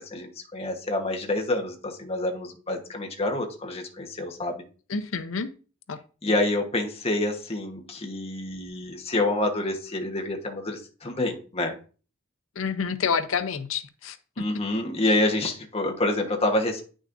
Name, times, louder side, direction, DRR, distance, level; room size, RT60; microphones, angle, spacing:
voice 1, 0.1-4.6 6.2-11.8 14.4-16.8, left 2 dB, 30° left, 2 dB, 1.2 m, -27 dB
voice 2, 4.9-5.5 5.9-6.0 6.3-6.4 12.6-14.2, left 6 dB, 75° left, 12 dB, 0.6 m, -28 dB
9.2 x 6.3 x 2.6 m, 0.37 s
head